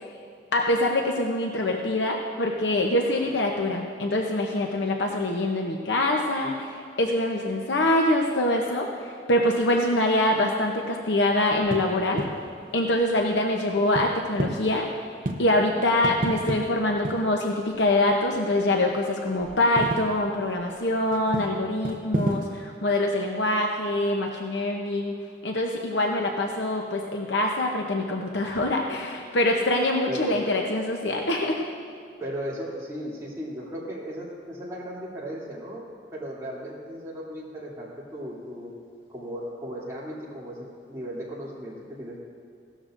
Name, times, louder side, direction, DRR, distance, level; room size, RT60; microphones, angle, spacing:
voice 1, 0.5-12.2 12.7-14.9 15.4-25.2 25.4-31.6, left 1 dB, 70° left, 1 dB, 0.8 m, -24 dB
sound 1, 11.5-19.0 19.2-22.6, right 1 dB, 45° right, 0.7 m, -34 dB
voice 2, 30.1-30.6 32.2-38.7 39.1-42.2, equal, 15° right, -7 dB, 2.8 m, -36 dB
16.5 x 13.0 x 2.6 m, 2.4 s
head